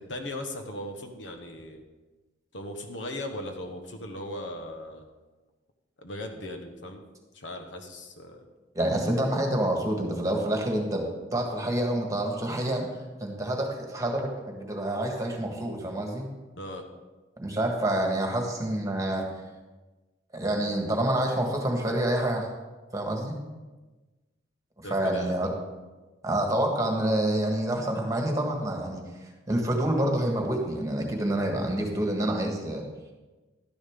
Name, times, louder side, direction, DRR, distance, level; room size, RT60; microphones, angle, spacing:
voice 1, 0.1-1.8 2.5-5.1 6.0-7.0 7.3-8.4 16.6-16.8 24.8-25.4, left 1 dB, 75° left, 4 dB, 1.2 m, -38 dB
voice 2, 8.7-11.0 11.3-12.9 13.2-16.2 17.4-19.2 20.3-22.5 22.9-23.3 24.8-25.5 26.2-29.0 29.5-32.8, right 1 dB, 20° right, 1 dB, 1.7 m, -27 dB
12.5 x 10.5 x 3.7 m, 1.2 s
head